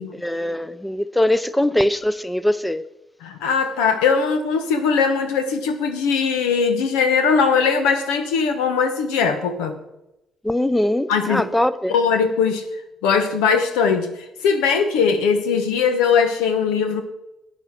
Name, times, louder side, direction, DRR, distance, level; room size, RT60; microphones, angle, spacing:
voice 1, 0.1-2.8 10.4-11.9, left 1 dB, 5° left, 0.6 m, -21 dB
voice 2, 3.2-9.7 11.1-11.4 11.9-12.6 13.0-14.1 14.4-17.0, left 5 dB, 85° left, 1.3 m, -20 dB
12.0 x 8.9 x 6.0 m
hypercardioid pair, 55°, 0 cm